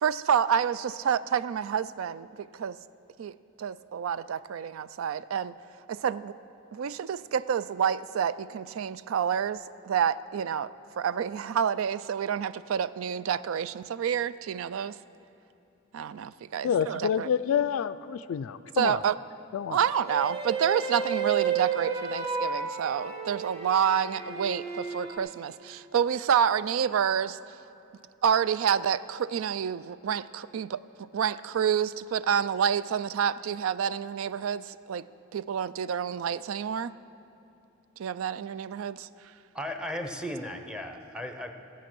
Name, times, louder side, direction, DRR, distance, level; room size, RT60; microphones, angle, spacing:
voice 1, 0.0-2.8 3.2-5.5 5.9-6.3 6.7-9.6 9.8-10.7 11.0-14.9 15.9-17.3 18.7-19.2 19.7-27.4 28.2-35.0 35.3-36.9 38.0-39.1, right 8 dB, 85° right, 16 dB, 0.4 m, -28 dB
voice 2, 16.6-19.0 19.5-19.8, left 8 dB, 85° left, 14 dB, 0.3 m, -28 dB
sound 1, 20.1-25.2, right 6 dB, 30° right, 2.0 m, -32 dB
voice 3, 39.5-41.5, left 1 dB, 5° right, 5 dB, 0.7 m, -35 dB
16.0 x 8.1 x 6.1 m, 2.8 s
head